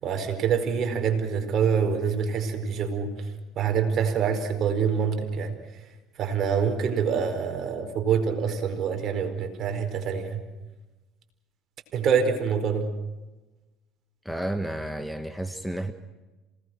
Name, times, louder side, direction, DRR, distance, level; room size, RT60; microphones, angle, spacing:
voice 1, 0.0-3.3 3.5-5.6 6.2-10.4 11.9-12.9, right 6 dB, 50° right, 6 dB, 4.6 m, -26 dB
voice 2, 14.2-15.9, right 1 dB, ahead, 8 dB, 1.4 m, -31 dB
27.5 x 19.0 x 6.4 m, 1.1 s
hypercardioid pair, 75°, 0 cm